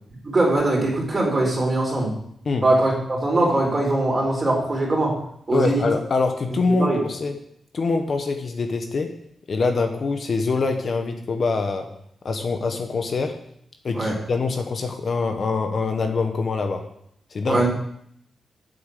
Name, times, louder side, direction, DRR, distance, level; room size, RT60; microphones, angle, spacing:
voice 1, 0.2-2.1 2.6-5.1 5.5-5.9 6.8-7.0 13.9-14.2 17.5-17.7, right 2 dB, 30° right, -2 dB, 4.2 m, -21 dB
voice 2, 5.5-7.4 7.7-9.2 9.5-11.9 12.2-13.4 13.8-16.8 17.3-17.6, left 4 dB, 50° left, 5 dB, 1.1 m, -24 dB
9.7 x 8.0 x 6.6 m, 0.70 s
wide cardioid pair, 145°, 0 cm